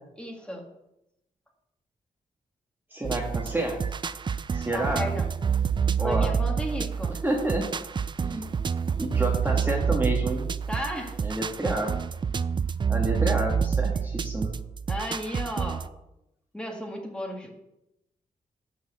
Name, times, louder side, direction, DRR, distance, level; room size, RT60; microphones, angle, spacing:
voice 1, 0.2-0.6 4.7-5.3 6.0-7.2 10.7-11.2 14.9-15.9 16.5-17.5, equal, 5° left, 1 dB, 2.0 m, -34 dB
voice 2, 2.9-3.8 4.5-5.0 6.0-6.3 7.2-7.7 8.2-8.5 9.0-10.5 11.2-11.9 12.9-14.5, right 1 dB, 15° right, -1 dB, 1.7 m, -29 dB
sound 1, 3.0-15.9, right 6 dB, 35° right, 0.4 m, -28 dB
11.5 x 4.7 x 7.8 m, 0.86 s
wide cardioid pair, 115°, 15 cm